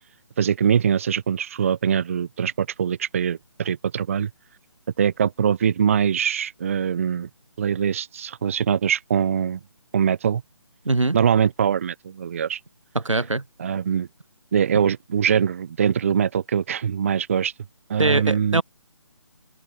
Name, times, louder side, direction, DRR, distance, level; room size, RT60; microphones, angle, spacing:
voice 1, 0.4-4.3 5.0-7.3 7.6-9.6 9.9-10.4 11.1-12.6 13.6-14.1 14.5-17.5 17.9-18.6, right 8 dB, 25° right, 0.6 m, -22 dB
voice 2, 10.8-11.2 12.9-13.4 18.0-18.6, right 2 dB, 80° right, 1.0 m, -22 dB
open air
figure-of-eight pair, 150°, 16 cm